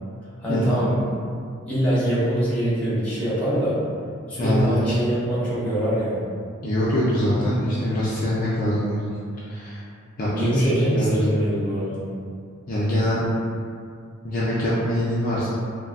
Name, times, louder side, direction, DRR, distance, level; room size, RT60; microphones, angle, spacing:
voice 1, 0.4-1.0 1.7-3.8 4.3-6.2 10.3-12.1, right 1 dB, 5° left, -11 dB, 0.8 m, -23 dB
voice 2, 4.4-5.0 6.6-9.1 9.5-9.8 10.2-10.7 10.9-11.3 12.7-13.2 14.2-15.5, equal, 40° left, -8 dB, 0.4 m, -23 dB
3.2 x 2.1 x 2.3 m, 2.3 s
head